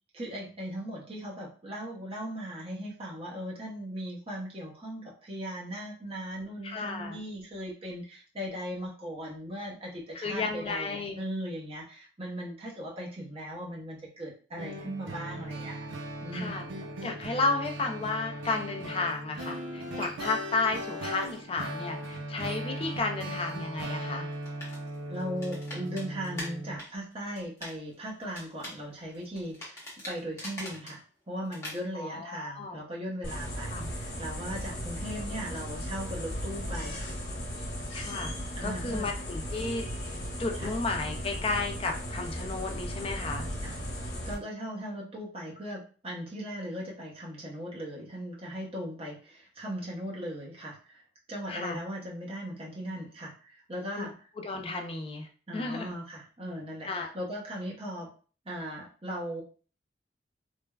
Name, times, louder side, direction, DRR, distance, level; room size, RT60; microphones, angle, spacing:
voice 1, 0.1-15.9 16.2-16.7 25.1-37.1 38.6-39.1 40.6-40.7 43.6-43.7 44.3-51.0 51.3-54.1 55.5-58.1 58.5-59.4, equal, 30° right, -3 dB, 0.7 m, -38 dB
voice 2, 6.6-7.2 10.1-11.2 16.3-16.6 17.0-24.3 31.9-32.8 33.7-33.9 37.9-38.3 38.6-39.9 40.4-43.5 51.5-51.8 54.0-54.1 54.4-55.9 56.8-57.1, left 3 dB, 30° left, 4 dB, 0.4 m, -33 dB
sound 1, 14.6-26.8, right 1 dB, 85° right, 0.5 m, -38 dB
sound 2, 24.3-26.5 26.8-27.7 28.0-31.0 31.5-31.8, left 1 dB, 15° left, 0.8 m, -43 dB
sound 3, 33.2-44.3, equal, 65° left, 1.0 m, -36 dB
3.3 x 2.1 x 2.3 m, 0.39 s
head